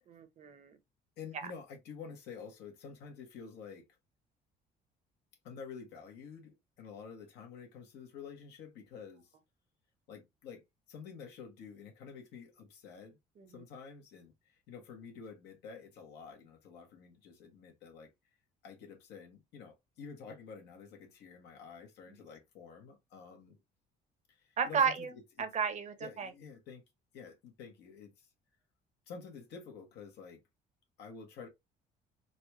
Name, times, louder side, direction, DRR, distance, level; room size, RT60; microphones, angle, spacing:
voice 1, 0.1-0.8 13.4-13.5 24.6-25.1 25.4-26.3, right 6 dB, 45° right, 0.8 m, -33 dB
voice 2, 1.2-3.9 5.4-9.3 10.1-13.2 13.5-18.1 18.6-23.6 24.3-25.5 26.0-26.8 27.1-28.3 29.1-30.4 31.0-31.5, left 6 dB, 80° left, 1.4 m, -49 dB
4.0 x 2.4 x 2.9 m
cardioid pair, 110°, 17 cm